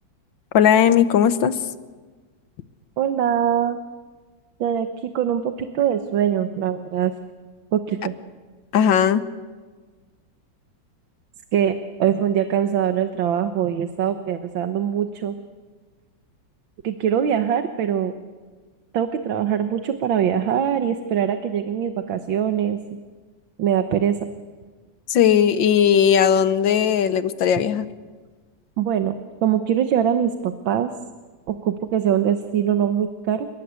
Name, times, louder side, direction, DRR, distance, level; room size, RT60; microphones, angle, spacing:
voice 1, 0.5-1.6 8.7-9.2 25.1-27.9, left 8 dB, 75° left, 12 dB, 1.7 m, -17 dB
voice 2, 3.0-3.8 4.6-7.1 7.7-8.1 11.5-15.4 16.8-18.1 18.9-22.8 23.6-24.2 28.8-30.9 31.5-33.5, right 9 dB, 85° right, 8 dB, 1.8 m, -22 dB
30.0 x 18.0 x 8.2 m, 1.4 s
omnidirectional pair, 2.1 m